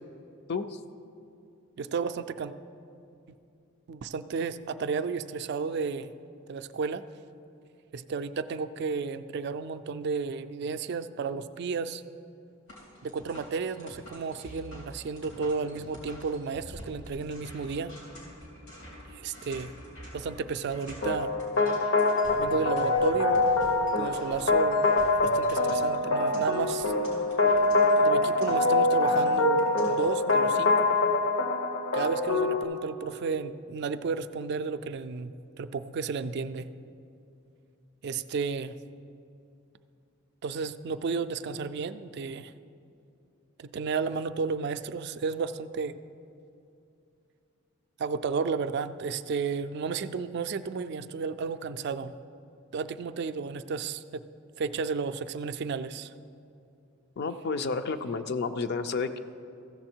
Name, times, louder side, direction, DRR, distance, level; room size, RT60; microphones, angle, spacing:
voice 1, 1.8-2.5 3.9-6.1 6.5-7.0 7.9-12.0 13.0-17.9 19.1-19.7 20.1-21.3 22.4-23.4 24.0-24.8 25.2-26.9 28.0-29.6 29.9-30.9 31.9-36.7 38.0-38.7 40.4-42.5 43.6-45.9 48.0-52.1 52.7-54.2 54.6-56.1, right 5 dB, 55° right, 11 dB, 0.3 m, -32 dB
sound 1, 12.7-30.6, equal, 90° left, 3.0 m, -47 dB
sound 2, 21.0-32.6, left 2 dB, 70° left, 0.9 m, -24 dB
voice 2, 57.2-59.2, left 4 dB, 50° left, 10 dB, 0.4 m, -31 dB
14.5 x 7.0 x 4.5 m, 2.6 s
head